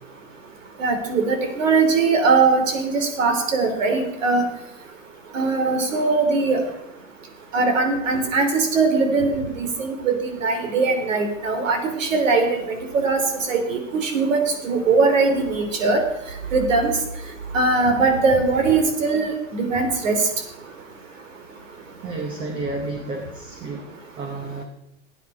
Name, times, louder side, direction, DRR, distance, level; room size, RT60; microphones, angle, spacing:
voice 1, 0.8-4.5 5.3-6.6 7.5-10.1 10.4-13.2 13.5-16.0 16.5-16.9 17.5-20.2, right 4 dB, 85° right, 6 dB, 3.3 m, -20 dB
voice 2, 22.0-24.6, right 2 dB, 15° right, 4 dB, 0.7 m, -31 dB
17.5 x 9.1 x 4.8 m, 0.85 s
supercardioid pair, 165°, 38 cm